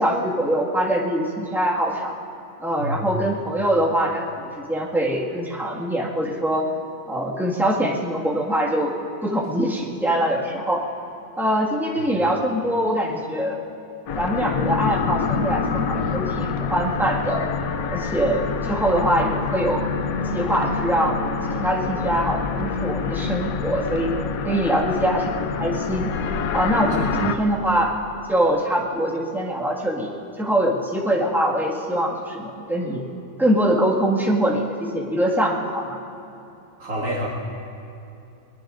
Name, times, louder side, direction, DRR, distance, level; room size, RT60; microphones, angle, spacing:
voice 1, 0.0-2.1 2.6-4.2 4.7-6.7 7.1-8.9 9.2-10.8 11.4-13.6 14.2-17.4 17.9-19.8 20.3-21.2 21.5-24.1 24.4-26.1 26.5-27.9 28.3-33.0 33.4-36.0, right 1 dB, ahead, -4 dB, 1.7 m, -23 dB
voice 2, 2.8-3.1 26.9-27.2 36.8-37.3, equal, 70° right, -4 dB, 2.3 m, -28 dB
sound 1, 14.1-27.4, left 5 dB, 75° left, 1.1 m, -26 dB
22.5 x 21.5 x 2.6 m, 2.7 s
omnidirectional pair, 1.6 m